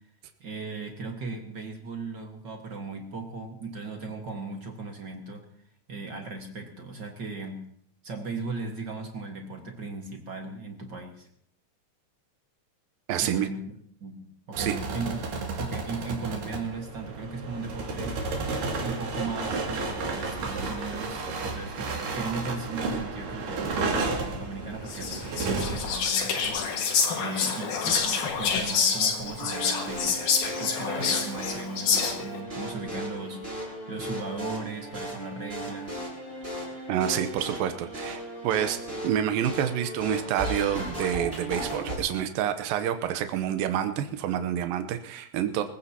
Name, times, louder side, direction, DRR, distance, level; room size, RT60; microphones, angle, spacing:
voice 1, 0.4-5.4 5.9-7.7 8.0-11.3 13.2-13.6 14.0-15.2 15.6-18.2 18.8-26.6 27.1-30.3 30.6-36.0, right 3 dB, 45° right, 3 dB, 1.5 m, -37 dB
voice 2, 13.1-13.5 14.6-14.8 36.9-45.6, right 10 dB, 90° right, 8 dB, 2.6 m, -28 dB
sound 1, 14.5-26.0, right 3 dB, 70° right, 3.9 m, -32 dB
Whispering, 24.9-32.4, left 6 dB, 65° left, 3.2 m, -27 dB
sound 2, 29.2-42.0, right 1 dB, 15° right, 7.5 m, -36 dB
25.0 x 15.5 x 2.9 m, 0.67 s
omnidirectional pair, 4.1 m